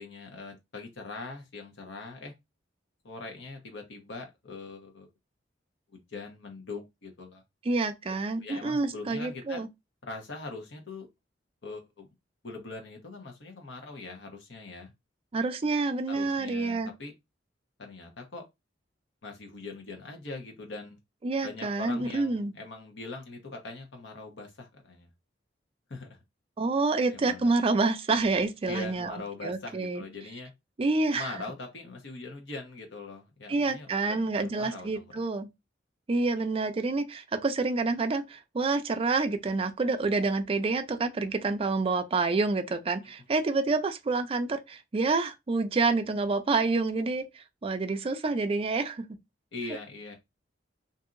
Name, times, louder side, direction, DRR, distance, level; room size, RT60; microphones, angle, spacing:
voice 1, 0.0-2.3 3.0-5.1 5.9-7.4 8.1-8.2 8.4-9.6 10.1-11.1 11.6-12.1 12.4-14.9 16.1-17.1 17.8-18.5 19.2-21.0 21.4-25.1 25.9-26.2 27.1-27.5 28.7-30.5 31.1-35.2 36.4-36.5 49.5-50.1, left 3 dB, 70° left, 0.9 m, -42 dB
voice 2, 7.7-9.7 15.3-16.9 21.2-22.5 26.6-29.1 29.4-30.0 30.8-31.3 33.5-35.5 36.1-49.0, right 3 dB, 30° right, 0.4 m, -28 dB
2.7 x 2.6 x 2.5 m
head